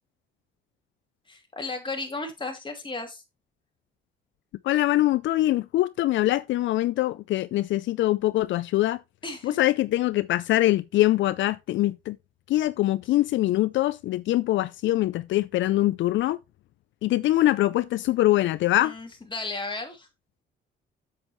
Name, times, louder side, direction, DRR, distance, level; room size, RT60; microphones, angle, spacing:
voice 1, 1.3-3.2 9.2-9.6 18.8-20.1, left 3 dB, 25° left, 2.7 m, -34 dB
voice 2, 4.6-9.0 9.4-12.2 12.5-16.4 17.0-18.9, left 15 dB, 70° left, 0.4 m, -23 dB
8.0 x 7.6 x 3.1 m
cardioid pair, 90°, 20 cm